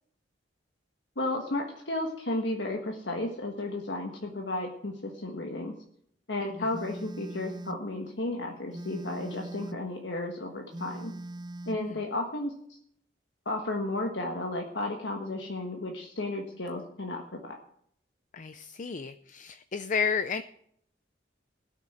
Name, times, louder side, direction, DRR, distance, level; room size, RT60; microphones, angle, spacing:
voice 1, 1.2-5.7 6.3-11.1 11.7-12.5 13.4-17.6, left 2 dB, 70° left, 2 dB, 1.5 m, -33 dB
Telephone, 6.7-7.9 8.7-9.9 10.7-11.9, right 1 dB, 25° right, 0.5 m, -41 dB
voice 2, 18.3-20.4, left 6 dB, 45° left, 11 dB, 0.5 m, -32 dB
17.0 x 6.7 x 7.9 m, 0.69 s
head